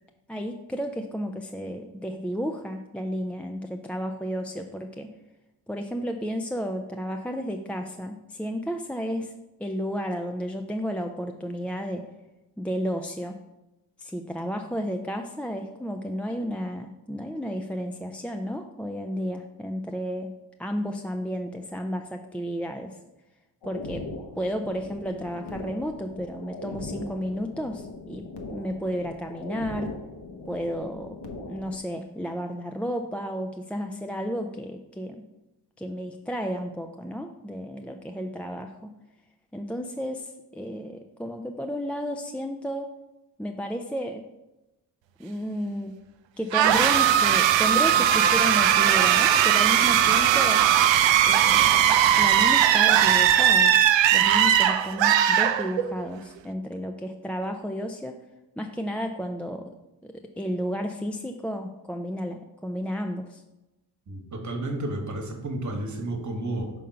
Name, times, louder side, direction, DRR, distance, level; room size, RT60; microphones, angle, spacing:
voice 1, 0.3-5.1 5.7-9.3 9.6-12.1 12.6-13.4 14.0-20.3 20.6-23.0 23.6-24.1 24.4-28.2 28.5-29.9 30.5-31.2 31.5-35.2 35.8-38.9 39.5-42.9 43.4-44.2 45.2-46.0 46.4-50.6 51.2-53.7 54.1-58.2 58.6-59.7 60.0-63.4, equal, 5° left, 3 dB, 0.3 m, -32 dB
sound 1, 23.6-31.8, left 3 dB, 70° left, 1.0 m, -40 dB
sound 2, 46.5-56.1, right 10 dB, 85° right, 0.5 m, -19 dB
voice 2, 64.1-66.7, right 1 dB, 40° right, 3 dB, 1.3 m, -31 dB
5.4 x 3.7 x 5.6 m, 0.98 s
cardioid pair, 70°, 44 cm